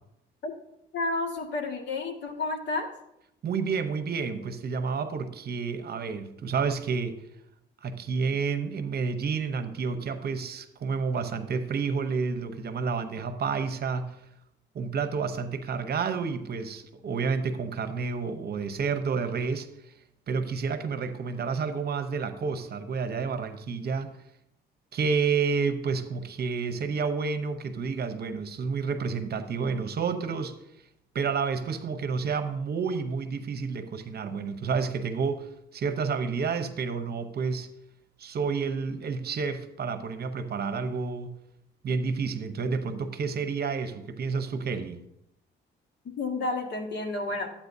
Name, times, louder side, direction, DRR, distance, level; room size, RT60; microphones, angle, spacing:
voice 1, 0.9-2.9 46.0-47.5, left 3 dB, 60° left, 2 dB, 1.8 m, -31 dB
voice 2, 3.4-7.2 7.8-14.1 14.7-19.7 20.3-24.1 24.9-30.5 31.1-37.7 38.2-41.3 41.8-45.0, right 5 dB, 55° right, 9 dB, 0.8 m, -30 dB
13.0 x 8.7 x 2.7 m, 0.82 s
cardioid pair, 90°, 20 cm